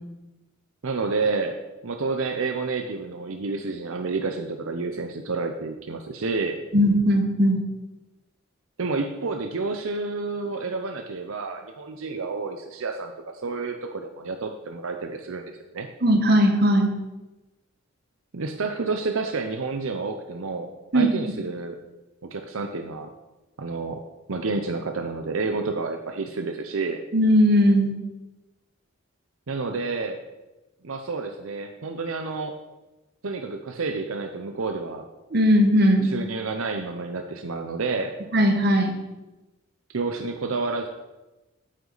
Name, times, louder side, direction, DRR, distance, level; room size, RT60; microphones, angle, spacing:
voice 1, 0.8-1.6 1.8-6.6 8.8-13.1 13.4-15.4 15.7-15.9 18.3-21.8 22.2-23.1 23.6-24.0 24.3-27.0 29.5-30.2 30.8-32.6 33.2-35.1 36.0-38.1 39.9-40.9, right 3 dB, 75° right, 5 dB, 0.7 m, -29 dB
voice 2, 6.7-7.6 16.0-16.9 20.9-21.1 27.1-27.9 35.3-36.1 38.3-38.9, equal, 50° right, 4 dB, 1.2 m, -18 dB
9.7 x 8.1 x 4.0 m, 1.1 s
head